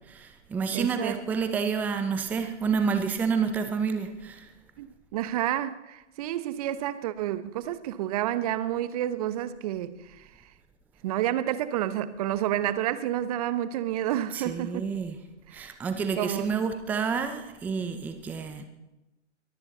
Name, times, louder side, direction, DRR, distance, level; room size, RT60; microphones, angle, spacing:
voice 1, 0.1-4.5 14.3-15.2 15.5-18.6, right 5 dB, 5° right, 0.6 m, -29 dB
voice 2, 0.7-1.2 4.8-10.0 11.0-14.8 15.5-15.7 16.0-16.6, right 12 dB, 30° right, 1.0 m, -30 dB
22.5 x 14.5 x 4.0 m
figure-of-eight pair, 135°, 36 cm